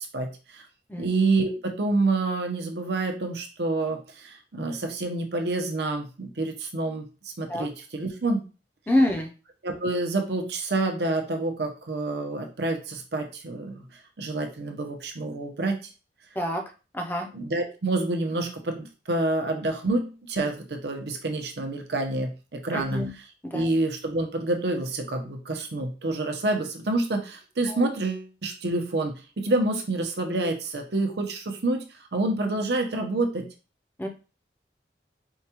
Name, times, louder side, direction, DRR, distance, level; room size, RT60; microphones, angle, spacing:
voice 1, 0.1-0.7 0.9-8.4 9.6-13.9 14.2-15.9 17.3-23.0 23.5-31.8 32.1-33.5, right 2 dB, 75° right, 4 dB, 0.7 m, -28 dB
voice 2, 8.9-9.3 16.4-16.6 16.9-17.3 22.7-23.1 23.4-23.7 27.6-27.9 34.0-34.1, left 1 dB, 10° left, 3 dB, 0.5 m, -26 dB
4.6 x 2.3 x 2.9 m, 0.34 s
head